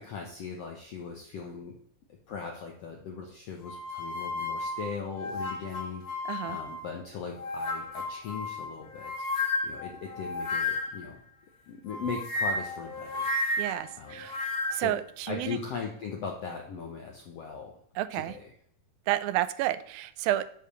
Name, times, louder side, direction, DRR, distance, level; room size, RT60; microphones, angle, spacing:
voice 1, 0.0-1.8 2.3-6.2 6.5-11.2 11.7-13.3 14.0-14.2 14.8-15.0 15.3-17.8 18.1-18.4, left 6 dB, 75° left, 1 dB, 1.4 m, -39 dB
sound 1, 3.6-6.9 7.4-11.1 11.9-14.9, left 2 dB, 55° left, 1.4 m, -33 dB
voice 2, 6.3-6.6 13.6-14.5 14.7-15.6 18.0-18.4 19.1-20.4, right 14 dB, 85° right, 13 dB, 2.4 m, -30 dB
7.2 x 4.9 x 6.8 m, 0.63 s
omnidirectional pair, 4.1 m